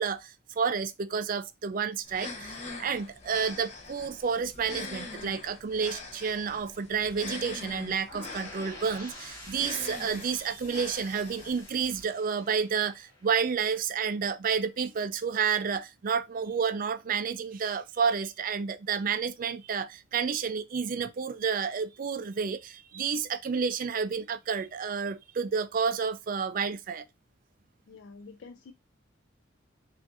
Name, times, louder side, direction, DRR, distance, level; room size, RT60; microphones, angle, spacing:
voice 1, 0.0-27.0, right 6 dB, 45° right, 0.4 m, -30 dB
sound 1, 2.0-12.0, left 3 dB, 35° left, 0.7 m, -43 dB
sound 2, 8.1-13.9, left 1 dB, 15° left, 1.6 m, -48 dB
voice 2, 27.9-28.7, left 4 dB, 60° left, 0.4 m, -48 dB
6.0 x 2.5 x 2.4 m
head